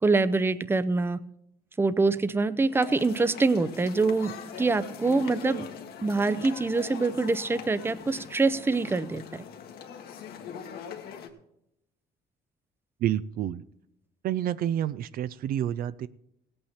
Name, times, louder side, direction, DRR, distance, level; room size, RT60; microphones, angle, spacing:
voice 1, 0.0-1.2 1.8-4.3 4.6-5.7 6.0-9.2, right 3 dB, 15° right, 15 dB, 0.6 m, -25 dB
sound 1, 2.7-11.3, left 7 dB, 65° left, 1.5 m, -41 dB
voice 2, 13.0-13.6 14.2-16.1, right 11 dB, 60° right, 15 dB, 0.4 m, -29 dB
17.0 x 8.8 x 4.3 m, 0.80 s
cardioid pair, 110°, 17 cm